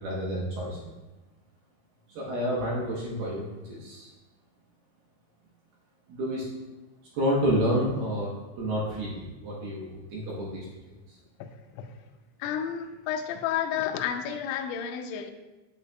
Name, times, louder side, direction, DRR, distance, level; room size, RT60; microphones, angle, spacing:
voice 1, 0.0-0.9 2.1-4.1 6.1-6.5 7.1-10.7 11.1-11.2, equal, 70° right, -4 dB, 2.5 m, -29 dB
voice 2, 12.4-15.3, left 9 dB, 85° left, 5 dB, 2.7 m, -31 dB
8.8 x 8.2 x 2.3 m, 1.1 s
omnidirectional pair, 5.8 m